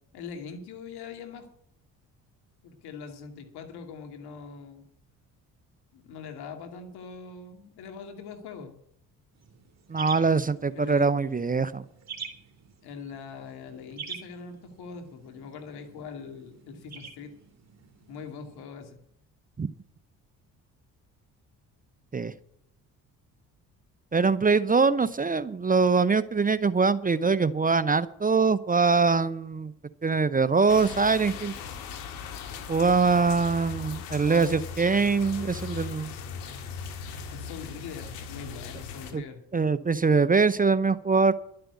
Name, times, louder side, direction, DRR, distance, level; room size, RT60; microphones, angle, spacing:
voice 1, 0.1-1.5 2.6-4.8 5.9-8.7 10.7-11.1 12.8-17.3 18.1-19.0 33.1-33.4 34.2-34.5 35.4-35.9 37.3-39.4, left 5 dB, 75° left, 5 dB, 2.6 m, -42 dB
sound 1, 9.3-18.6, right 6 dB, 40° right, 2.8 m, -46 dB
voice 2, 9.9-11.8 19.6-19.7 22.1-22.3 24.1-29.7 30.0-31.5 32.7-36.1 39.1-39.2 39.5-41.3, right 4 dB, 20° right, 16 dB, 0.7 m, -23 dB
sound 2, 30.7-39.1, left 6 dB, 90° left, 1.9 m, -39 dB
12.0 x 7.7 x 8.3 m, 0.73 s
supercardioid pair, 60°, 39 cm